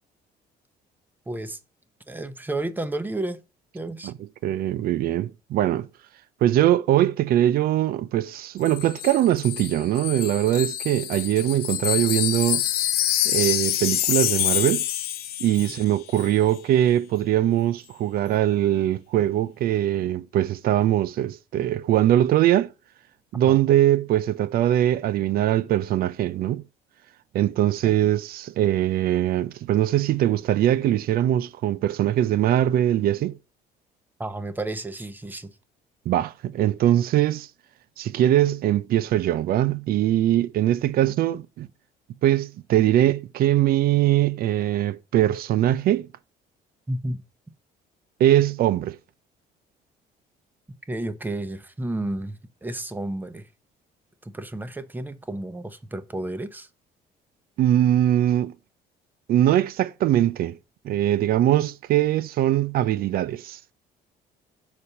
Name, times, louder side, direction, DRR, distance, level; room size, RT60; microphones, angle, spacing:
voice 1, 1.3-1.6 2.1-3.4 3.7-4.1 23.4-23.6 27.8-28.1 34.2-35.5 41.1-41.2 46.9-47.2 50.9-53.5 54.2-56.7, right 2 dB, 10° right, 0.8 m, -32 dB
voice 2, 4.4-5.9 6.4-12.6 13.2-14.8 15.4-22.7 23.3-26.6 27.3-33.4 36.1-37.5 38.0-41.7 42.2-46.1 48.2-49.0 57.6-58.5 59.3-60.6 60.8-63.6, right 12 dB, 60° right, 0.5 m, -22 dB
Wind chime, 8.6-15.9 16.1-16.3, left 12 dB, 70° left, 0.7 m, -26 dB
6.7 x 4.2 x 5.6 m
cardioid pair, 110°, 17 cm